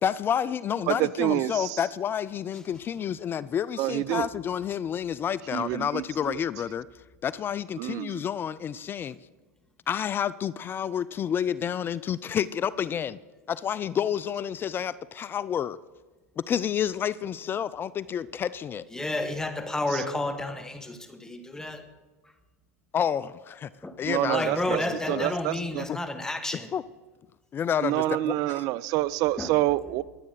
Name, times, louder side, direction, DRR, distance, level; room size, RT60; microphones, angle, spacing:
voice 1, 0.0-6.8 7.2-9.1 9.9-13.2 13.5-15.8 16.4-18.9 22.9-23.7 24.0-25.3 25.9-26.0 26.7-26.8 27.5-28.6, left 8 dB, 25° left, 19 dB, 0.4 m, -29 dB
voice 2, 0.9-1.7 3.8-4.3 5.5-6.4 7.8-8.2 24.1-24.8 25.1-25.8 27.8-30.0, right 16 dB, 50° right, 19 dB, 0.5 m, -27 dB
voice 3, 18.9-21.9 23.8-24.0 24.3-26.7 29.4-29.6, left 2 dB, 5° left, 8 dB, 1.6 m, -31 dB
22.5 x 8.5 x 3.9 m, 1.2 s
hypercardioid pair, 95°, 8 cm